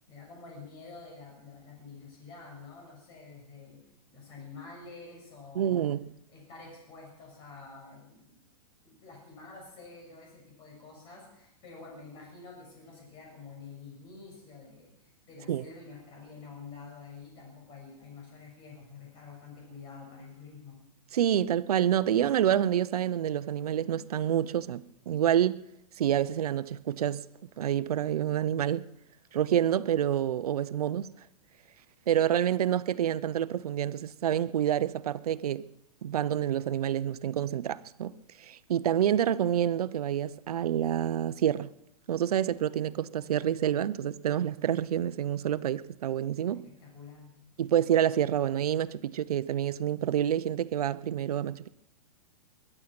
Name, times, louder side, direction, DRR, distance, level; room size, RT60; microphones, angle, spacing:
voice 1, 0.1-3.8 4.1-5.9 6.3-8.4 8.8-20.8 46.5-47.3, left 4 dB, 25° left, 7.0 m, -48 dB
voice 2, 5.6-6.1 15.5-15.6 21.1-25.6 26.0-27.3 27.6-28.9 29.3-31.1 32.1-35.7 36.0-38.1 38.4-41.7 42.1-46.6 47.6-51.7, right 10 dB, 80° right, 0.8 m, -28 dB
21.5 x 11.0 x 5.9 m
hypercardioid pair, 160°, 19 cm